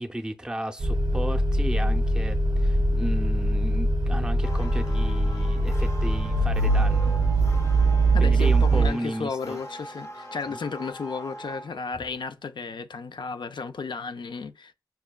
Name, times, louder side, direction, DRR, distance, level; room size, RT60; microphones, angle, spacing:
voice 1, 0.0-7.1 8.2-9.6, right 1 dB, 10° right, 0.5 m, -34 dB
sound 1, 0.8-8.9, right 2 dB, 80° right, 0.4 m, -22 dB
sound 2, 4.4-12.2, equal, 45° left, 0.6 m, -42 dB
voice 2, 8.1-14.7, left 5 dB, 90° left, 0.4 m, -33 dB
5.4 x 2.2 x 2.2 m
wide cardioid pair, 85°, 8 cm